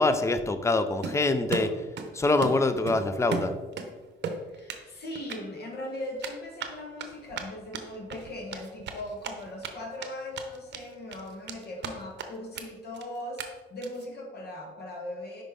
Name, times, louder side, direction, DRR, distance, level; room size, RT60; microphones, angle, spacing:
voice 1, 0.0-1.7 2.1-3.5, left 2 dB, 15° left, 10 dB, 0.5 m, -24 dB
Run, 1.0-2.1 2.4-3.9 4.2-4.8 5.2-5.4 6.2-9.7 10.0-10.1 10.3-10.8 11.1-11.9 12.2-12.3 12.6-12.7 12.9-13.0 13.4-13.5 13.8-14.1, right 5 dB, 60° right, 0.7 m, -35 dB
voice 2, 4.5-13.4 13.7-15.4, left 1 dB, 55° left, 0 dB, 1.3 m, -39 dB
5.2 x 5.2 x 3.4 m, 1.3 s
cardioid pair, 90°, 20 cm